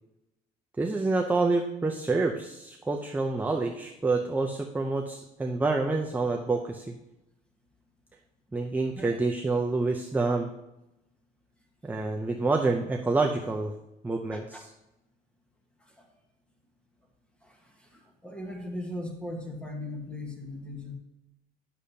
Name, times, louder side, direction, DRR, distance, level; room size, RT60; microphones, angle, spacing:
voice 1, 0.8-6.9 8.5-10.5 11.8-13.7 14.0-14.7, right 3 dB, 10° right, 2 dB, 0.5 m, -27 dB
voice 2, 14.3-14.6 16.0-16.1 18.2-21.0, left 1 dB, 5° left, 2 dB, 1.3 m, -38 dB
8.4 x 6.3 x 2.8 m, 0.92 s
cardioid pair, 110°, 17 cm